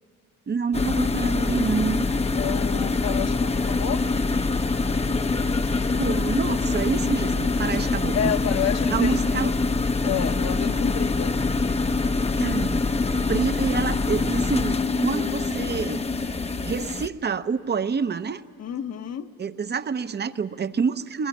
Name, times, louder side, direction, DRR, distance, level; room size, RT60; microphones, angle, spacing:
voice 1, 0.5-2.1 5.0-5.2 6.0-8.3 8.9-9.5 12.4-12.8 13.3-16.0 16.6-18.4 19.4-21.3, right 5 dB, 35° right, 12 dB, 0.7 m, -27 dB
sound 1, 0.7-17.1, left 3 dB, 20° left, 0.7 m, -24 dB
voice 2, 2.4-4.2 8.1-9.5 10.0-11.4 18.6-19.3, left 9 dB, 60° left, 8 dB, 1.2 m, -30 dB
21.0 x 20.5 x 9.9 m, 2.3 s
cardioid pair, 90°, 30 cm